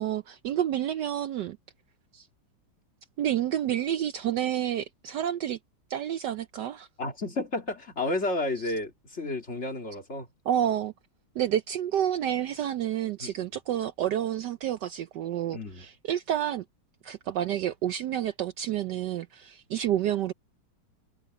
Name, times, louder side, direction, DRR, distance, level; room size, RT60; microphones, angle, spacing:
voice 1, 0.0-1.6 2.1-2.3 3.2-5.6 5.9-6.9 10.5-10.9 11.4-16.6 17.0-20.3, right 11 dB, 70° right, 1.1 m, -29 dB
voice 2, 7.0-10.3 13.2-13.5 15.5-15.9, left 2 dB, 35° left, 2.7 m, -32 dB
omnidirectional pair, 2.2 m